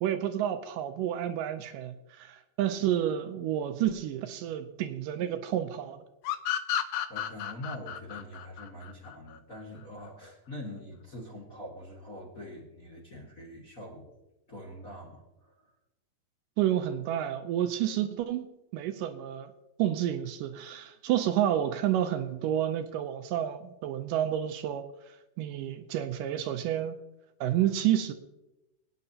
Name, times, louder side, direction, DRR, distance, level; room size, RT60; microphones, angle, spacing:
voice 1, 0.0-6.0 16.6-18.5 18.7-19.5 19.8-24.9 25.4-27.0 27.4-28.1, right 11 dB, 80° right, 2.1 m, -30 dB
sound 1, 6.2-9.6, left 10 dB, 80° left, 2.4 m, -32 dB
voice 2, 7.1-14.1 14.5-15.7, left 1 dB, 35° left, 1.5 m, -44 dB
22.5 x 9.3 x 2.8 m
omnidirectional pair, 4.0 m